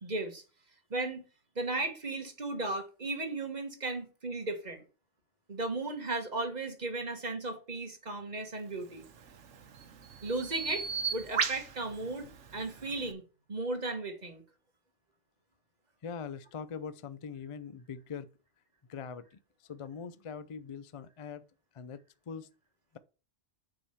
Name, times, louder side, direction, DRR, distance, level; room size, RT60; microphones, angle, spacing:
voice 1, 0.0-0.4 0.9-1.2 1.5-4.8 5.5-9.0 10.2-10.8 11.1-13.2 13.5-14.4, right 2 dB, 35° right, 1.5 m, -35 dB
Bird vocalization bird call bird song, 8.9-13.1, right 6 dB, 70° right, 1.2 m, -37 dB
voice 2, 16.0-18.3 18.9-21.4 21.7-22.5, left 6 dB, 50° left, 0.3 m, -42 dB
7.1 x 5.0 x 5.7 m
omnidirectional pair, 1.3 m